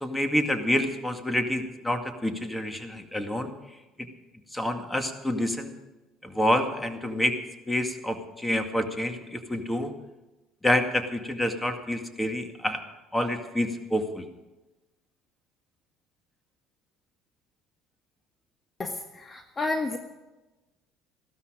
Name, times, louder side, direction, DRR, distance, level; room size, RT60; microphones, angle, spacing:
voice 1, 0.0-3.5 4.5-5.8 6.2-7.4 7.7-9.9 10.6-12.8 13.1-14.3, left 1 dB, 10° left, 6 dB, 2.1 m, -28 dB
voice 2, 18.8-20.0, left 2 dB, 30° left, 6 dB, 1.4 m, -31 dB
15.5 x 13.0 x 5.1 m, 1.1 s
supercardioid pair, 80°, 0 cm